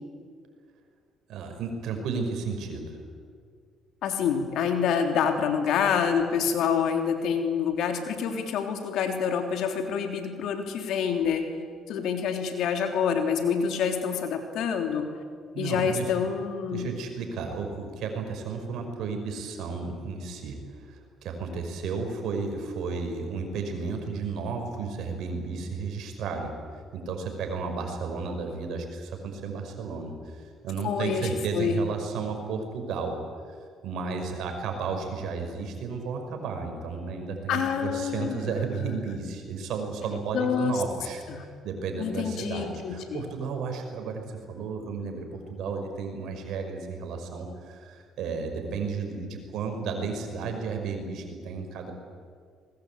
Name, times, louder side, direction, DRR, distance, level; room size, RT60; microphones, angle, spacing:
voice 1, 1.3-3.0 15.5-16.1 16.7-26.5 26.9-33.2 33.8-41.2 41.6-51.9, right 5 dB, 70° right, 4 dB, 5.5 m, -33 dB
voice 2, 4.0-11.5 11.9-15.1 15.6-16.9 30.8-31.8 37.5-38.6 40.3-40.8 41.3-41.4 42.0-43.2, left 7 dB, 75° left, 5 dB, 3.4 m, -27 dB
24.5 x 21.0 x 8.7 m, 2.1 s
supercardioid pair, 65°, 0 cm